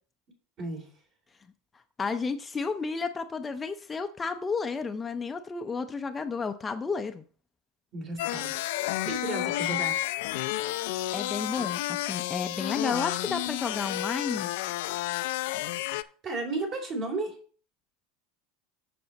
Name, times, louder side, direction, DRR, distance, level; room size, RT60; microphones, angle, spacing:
voice 1, 2.0-7.2 11.1-14.5, left 4 dB, 20° left, 7 dB, 0.5 m, -32 dB
voice 2, 7.9-8.5 8.8-10.0 15.9-17.3, right 2 dB, 40° right, 3 dB, 3.3 m, -34 dB
sound 1, 8.2-16.0, left 16 dB, 75° left, 0.4 m, -31 dB
6.9 x 6.8 x 4.0 m, 0.42 s
supercardioid pair, 125°, 0 cm